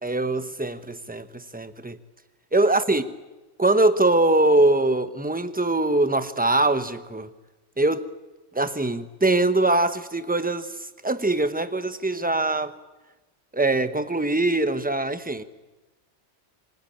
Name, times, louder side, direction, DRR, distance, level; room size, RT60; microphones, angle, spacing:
voice 1, 0.0-2.0 2.5-3.0 3.6-7.3 7.8-8.1 8.5-10.7 11.0-12.7 13.5-15.4, right 2 dB, 10° right, 0.9 m, -22 dB
26.5 x 21.5 x 8.7 m
omnidirectional pair, 1.2 m